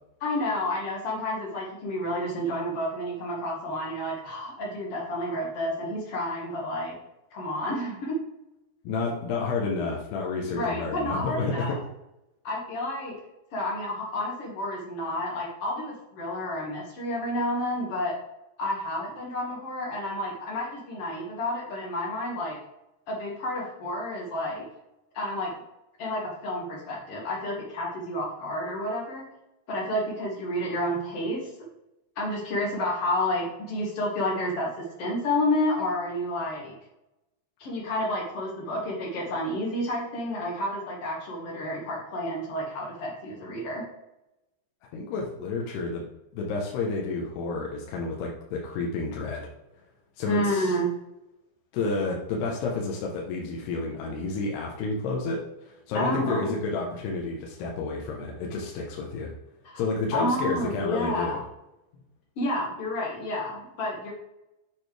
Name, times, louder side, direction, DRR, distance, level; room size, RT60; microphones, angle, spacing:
voice 1, 0.2-6.9 7.3-8.2 10.5-11.8 12.4-13.1 13.5-18.1 18.6-22.6 23.1-24.6 25.1-25.5 26.0-29.2 29.7-31.4 32.2-34.7 35.0-36.7 37.6-43.8 50.3-50.9 55.9-56.5 59.6-59.8 60.1-61.4 62.4-64.1, left 1 dB, 50° left, -1 dB, 2.0 m, -30 dB
voice 2, 8.8-11.8 44.9-46.0 46.3-49.5 50.2-50.7 51.7-59.3 59.8-61.4, left 3 dB, 75° left, -2 dB, 3.0 m, -30 dB
8.1 x 6.8 x 3.3 m, 0.91 s
omnidirectional pair, 5.0 m